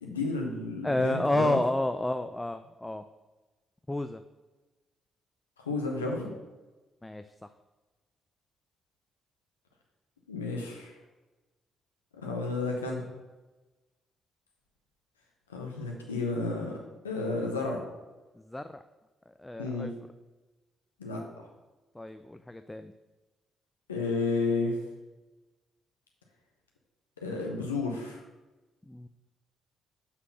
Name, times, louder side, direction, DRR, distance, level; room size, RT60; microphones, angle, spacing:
voice 1, 0.0-1.6 5.6-6.3 10.3-11.0 12.2-13.1 15.5-16.8 17.0-17.8 19.6-19.9 21.0-21.2 23.9-24.8 27.2-28.2, left 3 dB, 90° left, 0 dB, 0.6 m, -32 dB
voice 2, 0.8-3.0 3.9-4.2 7.0-7.3 18.5-18.8 19.4-19.9 22.0-22.9 28.9-29.1, left 1 dB, 15° left, 9 dB, 0.3 m, -30 dB
5.8 x 3.9 x 5.5 m, 1.2 s
hypercardioid pair, 40°, 0 cm